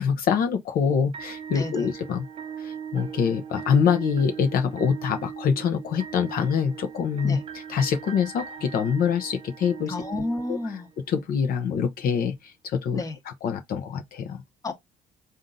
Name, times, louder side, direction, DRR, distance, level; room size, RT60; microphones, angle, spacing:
voice 1, 0.0-2.2 2.6-7.4 7.7-9.9 10.5-10.6 11.1-13.0 13.4-14.4, left 7 dB, 60° left, 0.8 m, -25 dB
sound 1, 1.1-11.2, right 7 dB, 35° right, 0.6 m, -39 dB
voice 2, 1.5-1.9 7.2-7.4 9.9-10.9 12.9-13.2 14.6-14.7, left 2 dB, 20° left, 1.0 m, -31 dB
3.8 x 2.6 x 3.9 m
cardioid pair, 110°, 17 cm